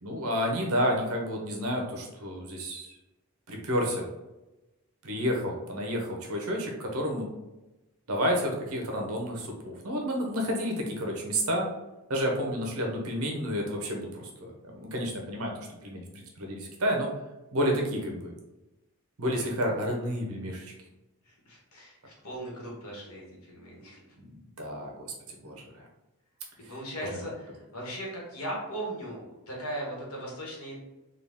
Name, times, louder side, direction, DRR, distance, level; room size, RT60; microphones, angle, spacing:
voice 1, 0.0-2.9 3.5-4.1 5.0-7.3 8.1-11.7 12.1-17.1 17.5-18.3 19.2-20.7 24.2-25.8 27.1-27.2, equal, 75° right, 1 dB, 0.8 m, -30 dB
voice 2, 21.2-24.0 26.6-30.8, right 1 dB, 80° left, -3 dB, 1.3 m, -38 dB
3.8 x 2.3 x 3.5 m, 1.0 s
head